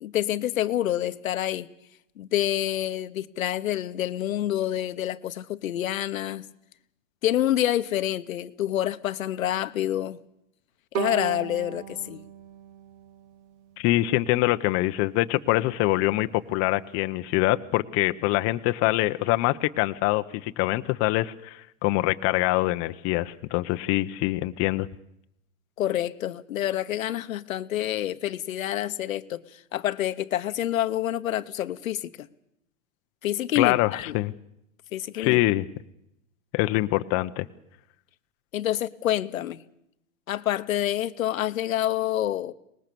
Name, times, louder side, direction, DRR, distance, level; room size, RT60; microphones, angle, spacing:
voice 1, 0.0-1.7 2.2-6.4 7.2-10.2 10.9-12.2 25.8-29.4 29.7-32.3 33.2-34.2 34.9-35.4 38.5-39.6 40.3-42.5, left 12 dB, 90° left, 1.1 m, -27 dB
Bowed string instrument, 10.9-14.0, right 10 dB, 60° right, 1.4 m, -36 dB
voice 2, 13.8-24.9 33.5-34.3 35.2-35.7 36.5-37.5, left 18 dB, 35° left, 0.9 m, -24 dB
24.5 x 20.0 x 6.9 m
supercardioid pair, 135°, 40 cm